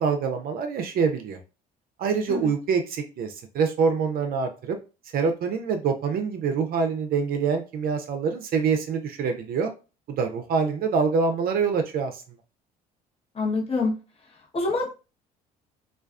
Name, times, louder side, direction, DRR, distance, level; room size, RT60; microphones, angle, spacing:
voice 1, 0.0-1.4 2.0-4.8 5.1-9.7 10.1-12.2, right 5 dB, 50° right, 5 dB, 0.5 m, -25 dB
voice 2, 13.3-13.9 14.5-14.9, left 3 dB, 30° left, -2 dB, 1.0 m, -25 dB
2.4 x 2.2 x 2.4 m, 0.32 s
hypercardioid pair, 70°, 19 cm